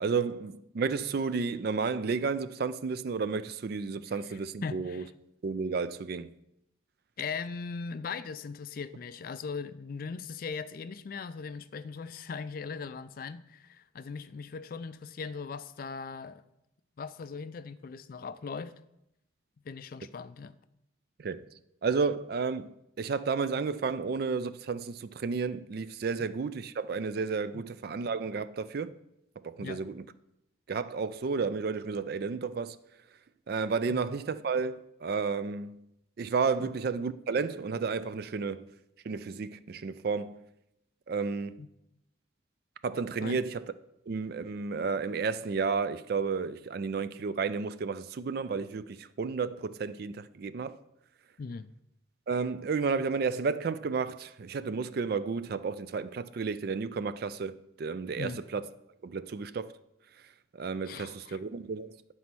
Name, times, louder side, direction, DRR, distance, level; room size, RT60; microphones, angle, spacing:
voice 1, 0.0-5.0 5.4-6.3 21.2-21.4 21.8-28.9 29.4-30.0 30.7-32.8 33.5-35.8 36.2-38.7 39.0-40.4 41.1-41.6 42.8-43.7 44.1-50.8 52.3-58.7 59.0-59.7 60.5-61.9, right 5 dB, 50° right, 0.3 m, -32 dB
voice 2, 4.3-5.1 7.2-16.4 17.0-18.7 19.6-20.6 27.5-27.6 29.6-29.8 33.9-34.0 36.6-36.7 41.6-41.7 43.2-43.4 51.4-51.7 58.2-58.4 60.9-61.4, left 5 dB, 45° left, 0.3 m, -39 dB
9.4 x 4.1 x 6.0 m
head